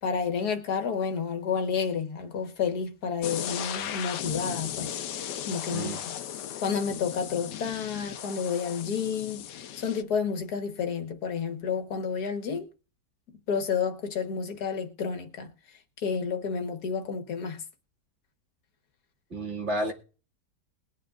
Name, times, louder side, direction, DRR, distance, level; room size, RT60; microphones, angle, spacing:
voice 1, 0.0-6.2 6.6-9.4 9.8-12.7 13.5-15.5 16.0-17.6, left 6 dB, 65° left, 1.8 m, -30 dB
sound 1, 3.2-10.0, left 10 dB, 80° left, 1.4 m, -36 dB
voice 2, 19.3-19.9, right 1 dB, 40° right, 2.5 m, -31 dB
21.5 x 9.0 x 2.5 m
omnidirectional pair, 1.8 m